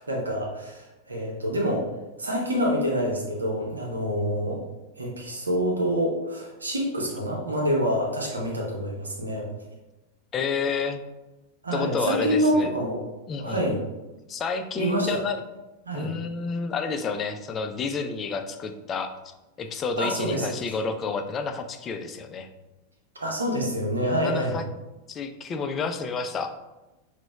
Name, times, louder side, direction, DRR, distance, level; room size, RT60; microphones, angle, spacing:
voice 1, 0.0-1.9 2.2-4.6 5.0-9.5 11.6-13.0 13.4-13.8 14.8-15.2 15.9-16.1 20.0-20.6 23.2-24.6, equal, 75° right, -1 dB, 0.7 m, -26 dB
voice 2, 10.3-11.0 11.7-12.7 13.3-13.6 14.3-15.4 15.9-22.5 24.2-24.6 25.1-26.5, left 5 dB, 25° left, 7 dB, 0.3 m, -30 dB
5.9 x 2.1 x 2.2 m, 1.1 s
figure-of-eight pair, 90°, 0 cm